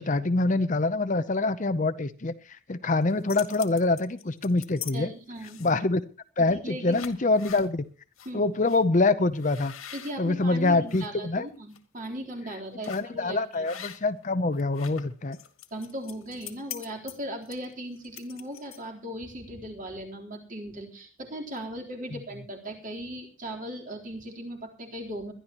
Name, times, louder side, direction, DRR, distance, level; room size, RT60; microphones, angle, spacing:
voice 1, 0.0-2.3 2.7-5.1 5.6-6.0 6.4-7.9 8.3-9.7 10.2-11.5 12.9-15.4, left 3 dB, 40° left, 12 dB, 0.7 m, -25 dB
sound 1, 3.0-4.9 5.4-5.9 6.4-6.6 6.9-7.7 8.2-8.3 8.7-8.8 9.4-11.1 11.5-11.8 12.8-13.1 13.6-14.2 14.5-19.0, left 11 dB, 90° left, 2.1 m, -43 dB
voice 2, 4.9-5.6 6.4-7.0 8.3-8.4 9.9-13.9 15.7-25.3, equal, 40° right, 1 dB, 3.8 m, -38 dB
21.5 x 12.5 x 3.0 m, 0.37 s
head